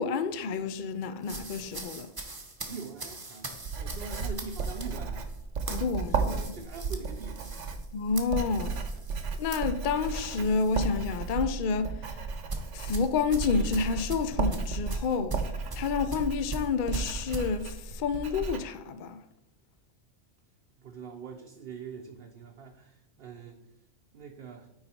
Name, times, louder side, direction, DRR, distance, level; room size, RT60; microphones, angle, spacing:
voice 1, 0.0-2.1 5.7-6.5 7.9-8.8 9.4-12.0 12.7-15.4 15.7-19.2, left 5 dB, 55° left, 0.6 m, -29 dB
sound 1, 1.2-10.8 11.2-11.4 12.5-17.5, right 3 dB, 20° right, 0.8 m, -41 dB
voice 2, 2.7-5.3 6.1-7.6 20.8-23.6 24.1-24.7, right 5 dB, 60° right, 0.8 m, -43 dB
Writing, 3.5-18.6, right 4 dB, 85° right, 1.1 m, -34 dB
9.5 x 4.1 x 4.2 m
omnidirectional pair, 1.2 m